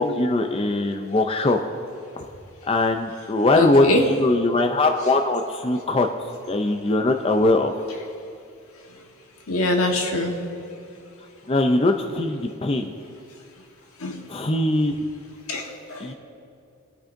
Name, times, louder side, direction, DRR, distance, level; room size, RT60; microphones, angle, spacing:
voice 1, 0.0-1.6 2.2-2.3 2.6-6.1 6.5-7.7 11.5-12.9 14.3-14.9 16.0-16.1, left 2 dB, 25° left, 5 dB, 0.5 m, -21 dB
voice 2, 3.5-4.0 9.5-10.3 14.0-14.2 15.5-16.1, left 2 dB, 80° left, 2 dB, 1.4 m, -23 dB
22.5 x 8.8 x 2.6 m, 2.7 s
head